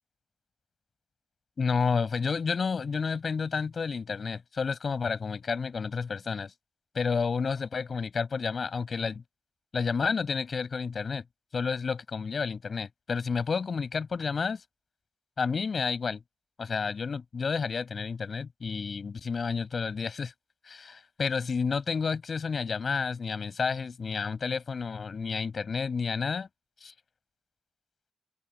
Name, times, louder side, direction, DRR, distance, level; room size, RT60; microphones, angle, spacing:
voice 1, 1.6-6.5 6.9-9.2 9.7-11.2 11.5-14.6 15.4-16.2 16.6-20.3 20.7-26.5 26.8-26.9, left 5 dB, 50° left, 7.5 m, -30 dB
wide cardioid pair, 165°, 0 cm